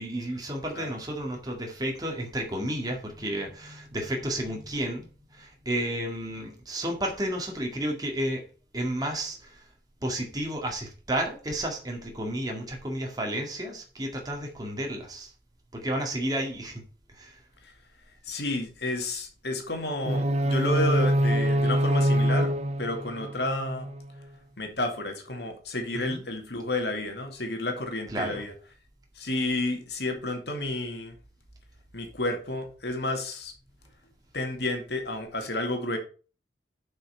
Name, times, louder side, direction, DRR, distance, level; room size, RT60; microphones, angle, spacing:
voice 1, 0.0-8.4 8.7-9.6 10.0-15.3 15.7-16.8 17.1-17.4 25.9-26.2 28.1-28.4, right 1 dB, 20° right, 1 dB, 1.9 m, -32 dB
voice 2, 18.2-22.5 22.8-23.9 24.6-28.5 29.2-31.2 31.9-33.5 34.3-36.0, left 2 dB, 70° left, 4 dB, 2.3 m, -31 dB
sound 1, 20.0-24.1, equal, 40° right, 0.7 m, -25 dB
7.7 x 5.7 x 5.5 m, 0.37 s
head